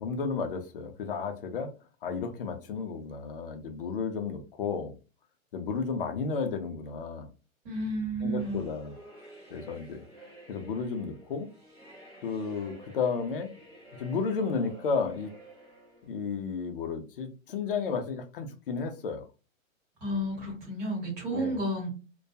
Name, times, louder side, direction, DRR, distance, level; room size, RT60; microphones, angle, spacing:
voice 1, 0.0-1.7 2.0-4.9 5.5-7.3 8.2-8.9 9.5-10.0 10.5-11.5 12.2-13.5 13.9-15.3 16.0-19.2 21.3-21.6, left 5 dB, 45° left, 0.5 m, -32 dB
voice 2, 7.6-8.6 20.0-21.9, right 1 dB, 30° right, 1.2 m, -31 dB
sound 1, 8.4-16.1, equal, 10° right, 0.8 m, -51 dB
2.2 x 2.2 x 2.6 m
hypercardioid pair, 160°, 41 cm